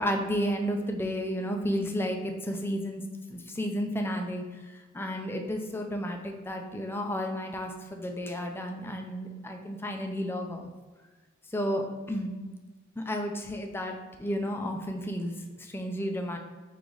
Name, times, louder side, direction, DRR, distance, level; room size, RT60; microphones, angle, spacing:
voice 1, 0.0-3.0 3.3-4.4 4.9-10.7 11.5-12.3 13.0-16.4, equal, 10° left, 3 dB, 0.4 m, -32 dB
4.8 x 2.5 x 3.8 m, 1.3 s
head